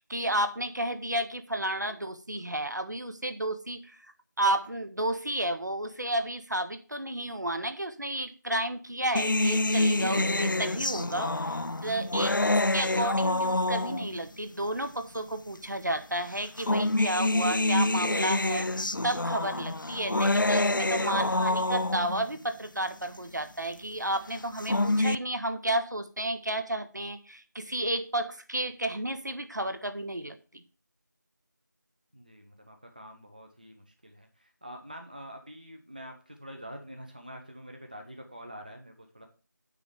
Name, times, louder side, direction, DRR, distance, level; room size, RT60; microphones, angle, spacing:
voice 1, 0.0-4.1 4.4-30.6, right 1 dB, 65° right, 9 dB, 1.0 m, -32 dB
sound 1, 9.2-14.2 15.2-15.3 16.4-22.3 24.4-25.2, left 2 dB, 90° left, 0.5 m, -27 dB
voice 2, 32.1-39.3, equal, 25° right, 4 dB, 0.8 m, -46 dB
9.7 x 3.4 x 6.9 m, 0.37 s
figure-of-eight pair, 175°, 10 cm